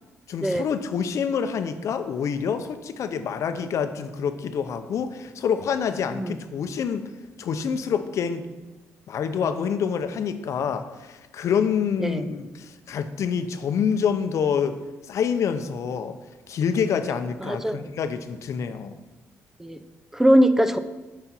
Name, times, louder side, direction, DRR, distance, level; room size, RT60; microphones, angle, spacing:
voice 1, 0.3-7.1 7.4-8.5 9.1-14.8 15.1-16.2 16.5-19.0, left 7 dB, 65° left, 9 dB, 0.7 m, -27 dB
voice 2, 6.1-6.4 12.0-12.3 17.4-17.9 19.6-19.8 20.1-20.8, equal, 5° right, 9 dB, 0.6 m, -21 dB
8.9 x 5.9 x 4.4 m, 1.1 s
cardioid pair, 80°, 6 cm